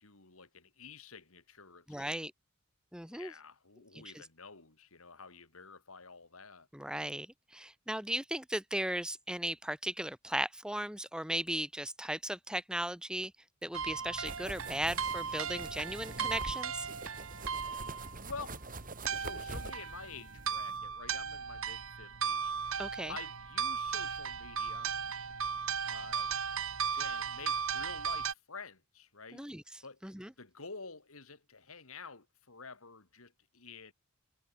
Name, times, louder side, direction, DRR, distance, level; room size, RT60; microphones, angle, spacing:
voice 1, 0.0-2.1 3.1-6.7 18.2-18.6 19.1-22.5 22.9-24.9 25.9-26.4 26.9-29.4 29.8-30.0 30.4-33.9, left 4 dB, 75° left, 2.8 m, -49 dB
voice 2, 1.9-2.3 2.9-3.3 4.0-4.2 6.7-7.3 7.5-13.3 13.6-16.9 22.8-23.1 29.3-29.6 30.0-30.3, right 1 dB, 5° right, 1.7 m, -37 dB
sound 1, 13.7-28.3, right 6 dB, 70° right, 2.5 m, -37 dB
sound 2, 14.2-20.8, right 2 dB, 40° right, 5.0 m, -46 dB
head